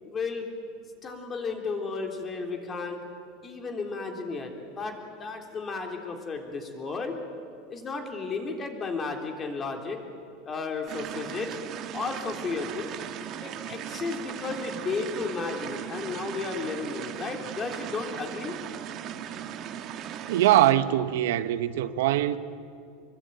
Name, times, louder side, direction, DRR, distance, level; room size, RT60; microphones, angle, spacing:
voice 1, 0.0-0.4 1.0-3.0 3.4-7.2 7.7-10.0 10.4-11.6 11.9-12.9 13.4-18.6, left 4 dB, 20° left, 3.4 m, -33 dB
sound 1, 10.9-20.7, right 10 dB, 35° right, 1.7 m, -38 dB
voice 2, 20.3-22.4, right 13 dB, 80° right, 1.1 m, -22 dB
26.0 x 23.5 x 9.3 m
supercardioid pair, 155°, 0 cm